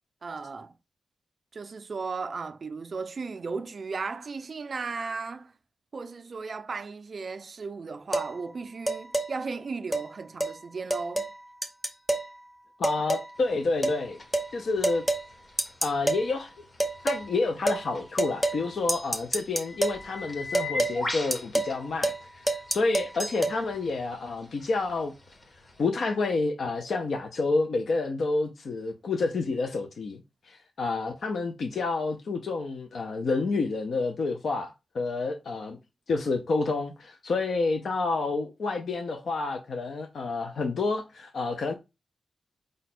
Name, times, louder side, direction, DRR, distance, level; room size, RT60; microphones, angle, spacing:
voice 1, 0.2-0.7 1.5-5.5 5.9-11.3, right 4 dB, 40° right, 0.3 m, -35 dB
sound 1, 8.1-8.3 8.9-9.3 9.9-10.1 10.4-10.5 10.9-11.3 11.6-12.3 12.8-13.3 13.8-14.0 14.3-14.5 14.8-15.3 15.6-16.2 16.8-17.2 17.7-17.8 18.2-18.6 18.9-20.0 20.5-21.0 21.3-21.8 22.0-22.2 22.5-23.6, right 2 dB, ahead, 0.6 m, -27 dB
voice 2, 12.8-14.2 14.5-15.1 15.8-16.5 17.0-25.1 25.8-35.8 36.1-41.7, left 3 dB, 65° left, 0.5 m, -29 dB
sound 2, 13.4-25.9, left 2 dB, 30° left, 0.9 m, -42 dB
4.9 x 2.2 x 4.2 m
wide cardioid pair, 175°, 0 cm